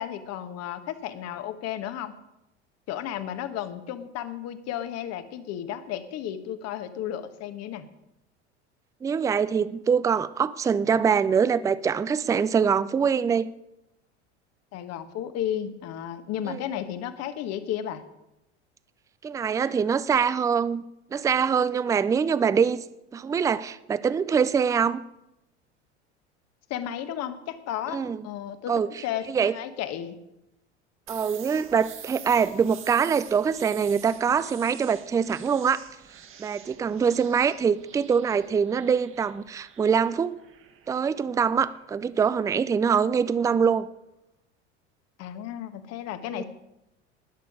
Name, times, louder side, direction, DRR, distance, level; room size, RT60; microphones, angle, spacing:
voice 1, 0.0-2.1 2.9-7.9 14.7-18.0 26.7-30.2 45.2-46.4, left 10 dB, 45° left, 11 dB, 1.3 m, -33 dB
voice 2, 9.0-13.5 16.5-16.6 19.2-20.8 21.1-22.8 23.1-25.0 27.9-28.3 28.7-29.6 31.1-35.8 36.4-40.3 40.9-43.9 46.3-46.4, right 6 dB, 10° right, 17 dB, 0.4 m, -24 dB
sound 1, 31.1-42.7, right 9 dB, 35° right, 1.5 m, -47 dB
19.5 x 6.9 x 4.9 m, 0.88 s
hypercardioid pair, 80°, 34 cm